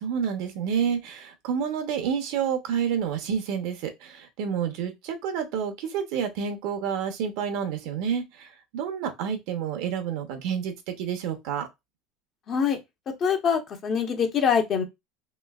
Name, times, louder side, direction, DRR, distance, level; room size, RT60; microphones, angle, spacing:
voice 1, 0.0-11.7, right 7 dB, 75° right, 0.8 m, -29 dB
voice 2, 12.5-12.8 13.2-14.8, left 7 dB, 40° left, 0.8 m, -24 dB
3.1 x 3.0 x 2.3 m
supercardioid pair, 125°, 0 cm